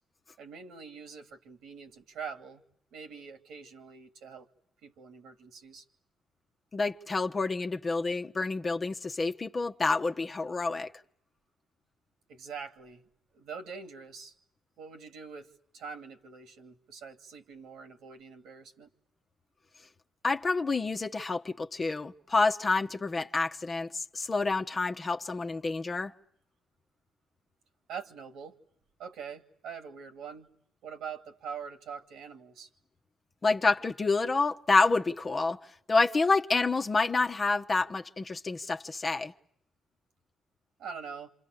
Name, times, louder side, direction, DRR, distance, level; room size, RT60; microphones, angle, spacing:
voice 1, 0.4-2.6 2.9-4.5 4.8-5.9 12.3-14.3 14.8-18.9 27.9-28.6 29.0-30.5 30.8-32.7 40.8-41.3, right 6 dB, 80° right, 2.5 m, -44 dB
voice 2, 6.7-10.9 20.2-26.1 33.4-35.6 35.9-39.3, left 3 dB, 30° left, 1.2 m, -28 dB
28.0 x 27.5 x 6.7 m
cardioid pair, 90°, 0 cm